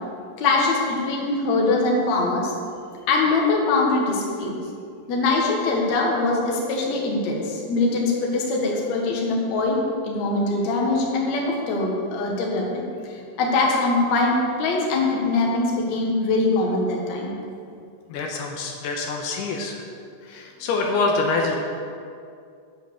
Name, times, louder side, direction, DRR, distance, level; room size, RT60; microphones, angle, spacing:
voice 1, 0.4-2.5 3.1-4.6 5.1-9.8 10.0-12.8 13.4-17.3, left 3 dB, 55° left, -2 dB, 2.4 m, -22 dB
voice 2, 18.1-19.8 20.2-21.6, left 3 dB, 80° left, 1 dB, 2.9 m, -25 dB
8.8 x 7.5 x 7.0 m, 2.4 s
omnidirectional pair, 4.7 m